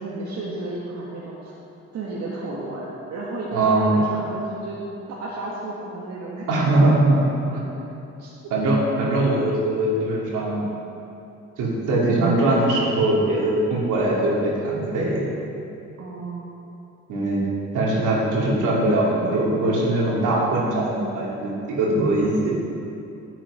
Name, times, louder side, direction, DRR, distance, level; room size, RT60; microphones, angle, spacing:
voice 1, 0.0-1.5 1.9-4.8 5.1-6.5 8.2-8.5 16.0-16.5, right 2 dB, 65° right, -6 dB, 1.8 m, -32 dB
voice 2, 3.5-4.0 6.5-7.3 7.5-7.6 8.5-10.6 11.6-15.2 17.1-17.4 17.7-21.5 21.8-22.5, right 2 dB, 85° right, -5 dB, 3.0 m, -21 dB
10.5 x 9.1 x 5.1 m, 2.8 s
cardioid pair, 90°, 30 cm